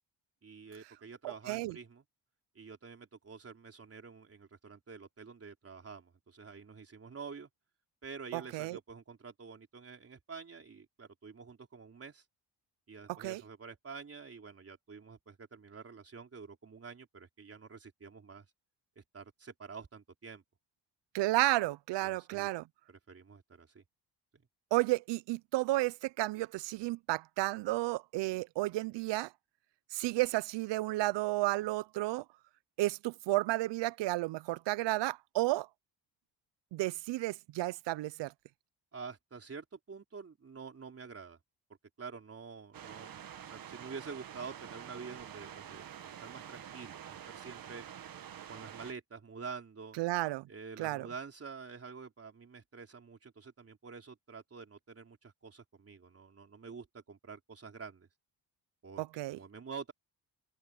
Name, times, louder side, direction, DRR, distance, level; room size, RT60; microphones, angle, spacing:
voice 1, 0.4-2.0 2.5-7.5 8.0-12.2 12.9-18.5 19.0-20.4 22.0-22.5 22.9-23.8 24.3-24.4 38.9-41.4 42.0-47.8 48.5-50.0 50.5-58.1 58.8-59.9, right 5 dB, 35° right, 4.0 m, -48 dB
voice 2, 1.2-1.8 8.3-8.8 13.1-13.4 21.1-22.6 24.7-29.3 29.9-32.2 32.8-35.7 36.7-38.3 50.0-50.4 50.8-51.1 59.0-59.4, right 18 dB, 90° right, 0.6 m, -32 dB
sound 1, 42.7-48.9, right 9 dB, 55° right, 1.7 m, -48 dB
open air
cardioid pair, 115°, 41 cm